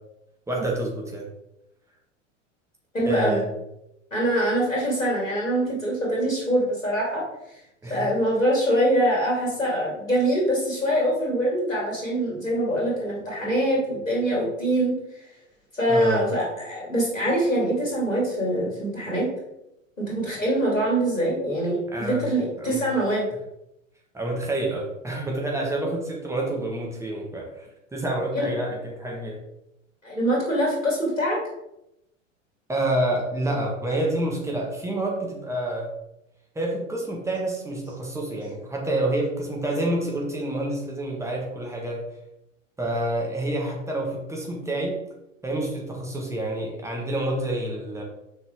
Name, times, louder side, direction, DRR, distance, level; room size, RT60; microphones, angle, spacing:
voice 1, 0.5-1.3 3.0-3.5 7.8-8.0 15.9-16.2 21.9-22.2 22.6-22.8 24.1-29.4 32.7-35.9 36.5-42.0 42.8-45.0 45.4-48.0, right 1 dB, 5° right, -2 dB, 1.5 m, -28 dB
voice 2, 2.9-3.4 4.1-7.2 7.9-14.9 15.7-19.3 20.0-23.3 28.3-28.5 30.0-31.4, right 1 dB, 85° left, -4 dB, 2.7 m, -24 dB
6.6 x 5.3 x 3.7 m, 0.87 s
figure-of-eight pair, 90°, 39 cm